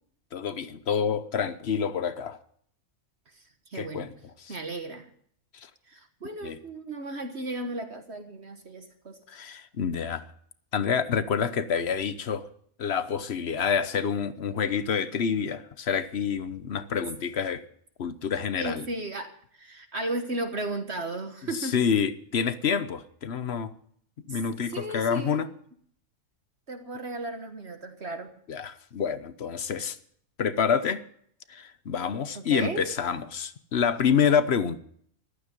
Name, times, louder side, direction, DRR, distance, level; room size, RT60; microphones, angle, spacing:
voice 1, 0.3-2.4 3.7-4.1 4.4-4.6 6.4-6.6 9.3-10.3 10.7-12.5 12.8-17.6 18.0-18.8 21.6-23.7 24.3-25.5 28.5-30.0 30.4-31.0 31.5-34.8, left 7 dB, 50° left, 1.1 m, -27 dB
voice 2, 3.7-4.1 4.5-5.1 5.9-9.2 18.5-21.8 24.3-24.4 24.7-25.4 26.7-28.3 32.3-32.9, right 2 dB, 50° right, 1.6 m, -35 dB
14.5 x 13.0 x 5.4 m
omnidirectional pair, 1.5 m